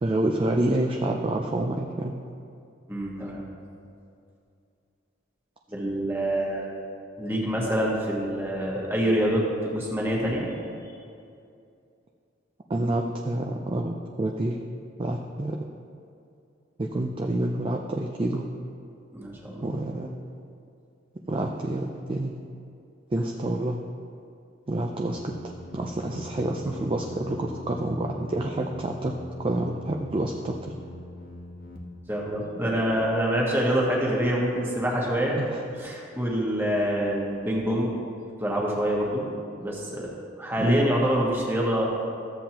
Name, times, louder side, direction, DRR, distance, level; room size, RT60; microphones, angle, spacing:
voice 1, 0.0-2.2 12.7-14.6 15.0-15.6 16.8-18.5 19.6-20.2 21.3-22.4 23.1-23.8 24.7-25.3 25.7-30.7 35.4-35.6 40.6-40.8, right 1 dB, 30° right, 1 dB, 0.4 m, -28 dB
voice 2, 2.9-3.4 5.7-6.7 7.2-10.5 10.8-10.9 19.1-19.7 32.1-35.4 35.7-37.9 38.4-39.3 39.6-40.1 40.4-41.9, equal, 10° right, -3 dB, 1.5 m, -26 dB
sound 1, 25.1-31.8, left 1 dB, 50° left, 1.0 m, -43 dB
13.5 x 7.5 x 2.9 m, 2.5 s
head